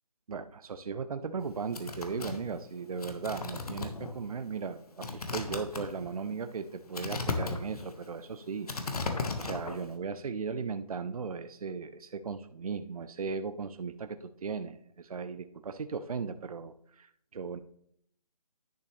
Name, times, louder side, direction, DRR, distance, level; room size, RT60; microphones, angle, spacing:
voice 1, 0.3-17.6, right 5 dB, 65° right, 11 dB, 0.6 m, -37 dB
sound 1, 1.4-9.9, left 3 dB, 70° left, 1.5 m, -36 dB
10.5 x 6.7 x 3.3 m, 0.66 s
figure-of-eight pair, 155°, 20 cm